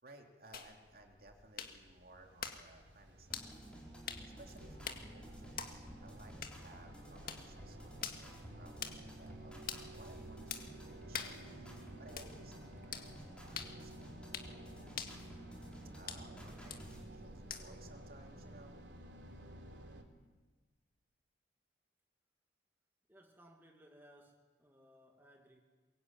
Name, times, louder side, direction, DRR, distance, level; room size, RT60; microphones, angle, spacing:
voice 1, 0.0-4.0 4.4-15.0 15.9-18.8, right 2 dB, 50° right, 2 dB, 3.2 m, -60 dB
sound 1, 0.5-17.9, left 7 dB, 50° left, 2.0 m, -49 dB
sound 2, 1.6-20.0, right 1 dB, 75° right, 3.3 m, -53 dB
sound 3, 3.3-17.0, equal, 5° left, 4.6 m, -54 dB
voice 2, 23.1-25.6, equal, 10° right, 1 dB, 2.2 m, -62 dB
22.5 x 22.5 x 9.3 m, 1.3 s
head